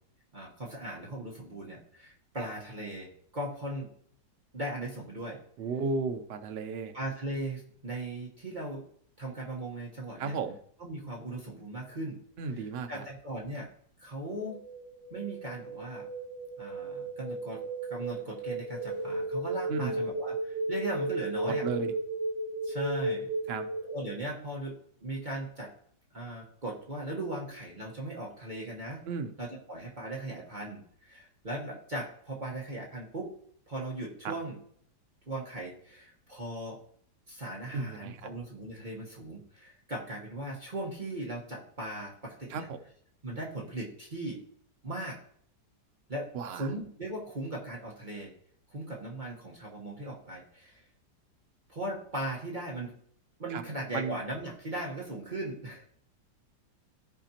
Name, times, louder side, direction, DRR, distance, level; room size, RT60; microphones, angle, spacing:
voice 1, 0.3-3.9 4.5-5.4 6.9-8.9 9.2-10.4 10.8-12.2 12.5-13.7 14.0-14.6 15.1-16.1 16.6-17.6 17.9-21.7 22.6-23.3 23.9-25.7 26.1-29.0 29.4-33.3 33.7-34.6 35.3-36.8 37.3-42.7 43.2-44.4 44.8-45.2 46.1-48.3 48.7-50.8 51.7-53.0 53.4-55.8, right 1 dB, 30° right, -3 dB, 1.2 m, -38 dB
voice 2, 5.6-6.9 10.2-10.6 12.4-13.0 19.7-19.9 21.4-21.9 23.5-23.7 29.1-29.3 34.2-34.3 37.7-38.3 42.5-42.8 46.3-46.7 53.5-53.6 53.9-54.2, right 4 dB, 70° right, 7 dB, 0.6 m, -34 dB
sound 1, 14.5-24.2, right 2 dB, 15° right, 3.1 m, -35 dB
14.5 x 5.0 x 2.9 m, 0.63 s
omnidirectional pair, 1.8 m